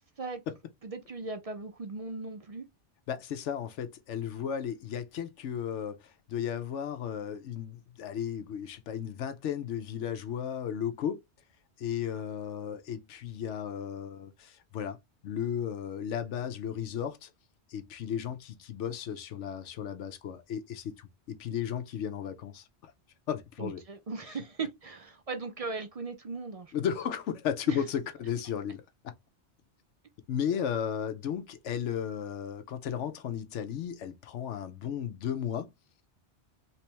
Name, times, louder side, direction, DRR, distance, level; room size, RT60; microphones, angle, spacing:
voice 1, 0.8-2.7 23.6-26.7 27.7-27.8, right 4 dB, 45° right, 0.5 m, -38 dB
voice 2, 3.1-11.2 11.8-15.0 15.2-17.3 17.7-22.9 23.3-23.8 26.7-29.1 30.3-35.7, left 8 dB, 80° left, 1.0 m, -34 dB
3.3 x 2.9 x 3.3 m
omnidirectional pair, 1.2 m